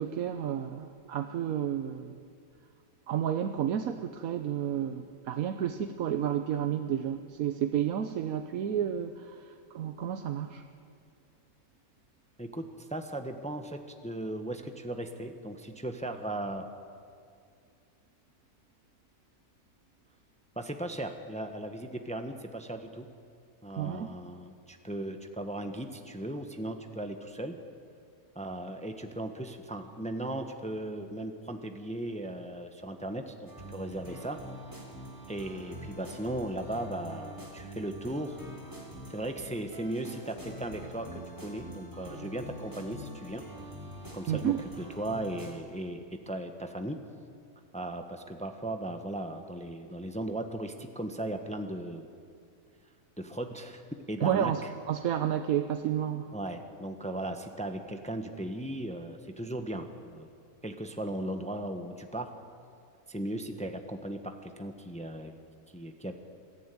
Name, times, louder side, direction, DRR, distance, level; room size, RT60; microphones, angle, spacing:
voice 1, 0.0-2.2 3.1-10.6 23.8-24.1 44.3-44.6 54.2-56.3, right 9 dB, 70° right, 7 dB, 1.2 m, -31 dB
voice 2, 12.4-16.7 20.6-23.0 23.6-27.6 28.3-34.4 35.3-38.4 39.1-43.4 44.1-47.0 47.7-52.1 53.2-53.8 54.1-54.5 56.3-60.3 60.6-62.3 63.1-65.3 65.7-66.1, right 1 dB, 5° left, 6 dB, 1.0 m, -37 dB
sound 1, 33.5-45.5, equal, 10° right, 3.7 m, -45 dB
21.5 x 14.0 x 9.4 m, 2.3 s
omnidirectional pair, 1.6 m